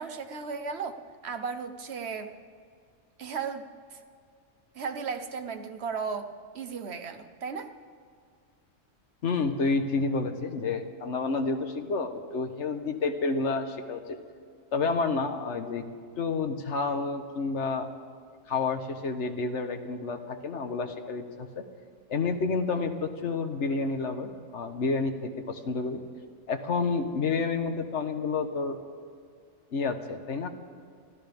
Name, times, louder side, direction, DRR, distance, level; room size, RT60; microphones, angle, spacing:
voice 1, 0.0-2.3 3.2-4.0 4.7-6.3 6.5-7.7, right 5 dB, 60° right, 8 dB, 1.3 m, -35 dB
voice 2, 9.2-14.2 14.7-15.8 16.2-17.9 18.5-21.6 22.1-26.0 26.5-28.8 29.7-30.5, left 4 dB, 70° left, 5 dB, 1.5 m, -29 dB
25.0 x 15.0 x 3.5 m, 2.2 s
omnidirectional pair, 1.3 m